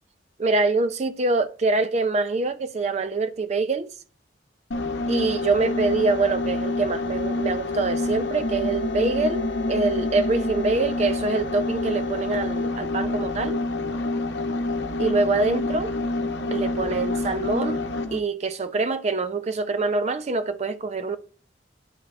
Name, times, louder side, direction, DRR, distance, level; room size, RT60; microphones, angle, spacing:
voice 1, 0.4-3.9 5.1-13.6 15.0-16.0 16.5-17.8 18.1-21.2, right 3 dB, 40° right, 0.4 m, -25 dB
sound 1, 4.7-18.2, left 2 dB, 70° left, 0.8 m, -27 dB
9.8 x 3.5 x 3.3 m
head